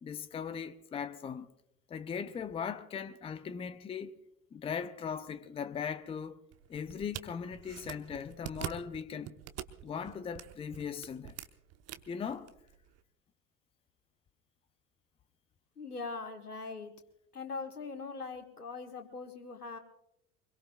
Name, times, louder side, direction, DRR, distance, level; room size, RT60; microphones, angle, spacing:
voice 1, 0.0-1.5 1.9-4.1 4.5-6.4 6.7-9.4 9.8-11.4 12.1-12.6, left 7 dB, 15° left, 0.6 m, -39 dB
sound 1, 6.5-13.0, right 12 dB, 35° right, 1.0 m, -46 dB
voice 2, 15.8-16.9 17.3-19.8, left 4 dB, 85° left, 1.7 m, -41 dB
24.5 x 22.5 x 2.3 m
figure-of-eight pair, 75°, 45 cm